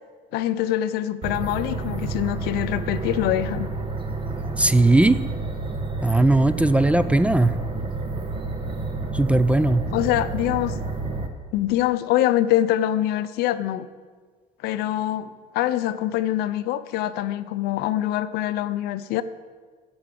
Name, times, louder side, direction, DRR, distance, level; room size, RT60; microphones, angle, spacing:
voice 1, 0.3-3.7 9.9-10.8 11.5-13.9 14.6-19.2, left 13 dB, 80° left, 14 dB, 0.5 m, -24 dB
sound 1, 1.2-11.3, right 3 dB, 30° right, 1.2 m, -30 dB
voice 2, 4.6-5.2 6.0-7.5 9.1-9.8, right 2 dB, 10° right, 14 dB, 0.4 m, -18 dB
8.6 x 7.0 x 7.5 m, 1.5 s
cardioid pair, 105°, 16 cm